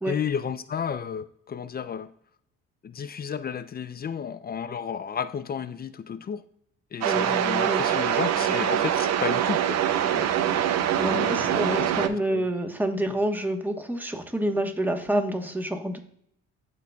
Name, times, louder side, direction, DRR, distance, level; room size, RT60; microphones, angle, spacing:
voice 1, 0.0-2.1 2.8-6.4 6.9-9.8 11.1-12.5, left 7 dB, 30° left, 13 dB, 0.4 m, -32 dB
voice 2, 7.0-8.1 8.4-8.8 10.1-16.0, right 1 dB, 5° right, 4 dB, 1.2 m, -29 dB
sound 1, 7.0-12.1, right 10 dB, 60° right, 0.6 m, -24 dB
11.5 x 3.9 x 2.3 m, 0.70 s
supercardioid pair, 75°, 30 cm